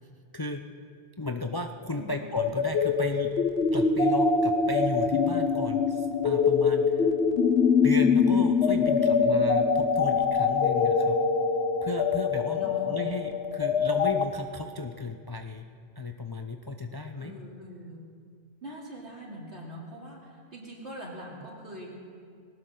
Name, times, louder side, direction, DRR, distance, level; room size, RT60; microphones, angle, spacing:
voice 1, 0.3-0.7 1.2-3.4 3.7-7.1 7.8-11.2 11.8-15.7 16.0-17.3, left 2 dB, 30° left, 5 dB, 0.5 m, -34 dB
voice 2, 1.9-2.3 8.8-9.4 12.5-13.0 17.1-18.0 18.6-21.9, equal, 75° right, -4 dB, 3.8 m, -43 dB
sound 1, 2.4-14.2, left 5 dB, 70° left, 1.0 m, -24 dB
20.5 x 18.0 x 3.9 m, 2.1 s
omnidirectional pair, 1.1 m